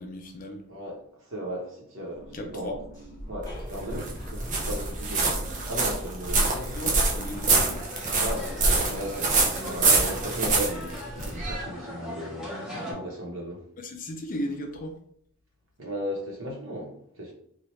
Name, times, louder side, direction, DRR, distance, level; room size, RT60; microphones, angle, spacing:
voice 1, 0.0-0.6 2.3-2.8 6.7-7.9 13.8-15.0, left 1 dB, 40° left, 0.4 m, -36 dB
voice 2, 0.7-2.8 3.3-6.8 8.2-13.6 15.8-17.3, equal, 65° right, 0.9 m, -36 dB
sound 1, 2.1-7.7, equal, 15° left, 1.1 m, -42 dB
sound 2, 3.4-11.6, right 3 dB, 35° right, 0.5 m, -25 dB
sound 3, 7.3-12.9, left 1 dB, 5° right, 0.8 m, -40 dB
2.9 x 2.3 x 3.1 m
head